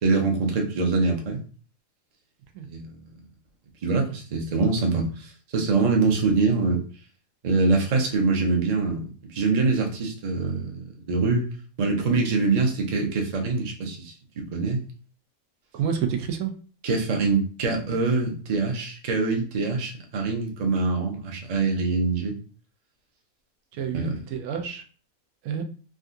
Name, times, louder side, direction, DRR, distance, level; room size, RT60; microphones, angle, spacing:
voice 1, 0.0-1.4 2.6-3.1 3.8-6.8 7.4-9.0 9.3-11.4 11.8-14.1 14.5-14.8 16.8-22.3 23.8-24.2, right 3 dB, 45° right, 1 dB, 0.5 m, -24 dB
voice 2, 15.7-16.5 23.8-24.8 25.4-25.6, right 7 dB, 85° right, 5 dB, 1.1 m, -28 dB
3.7 x 2.3 x 2.5 m, 0.39 s
omnidirectional pair, 1.5 m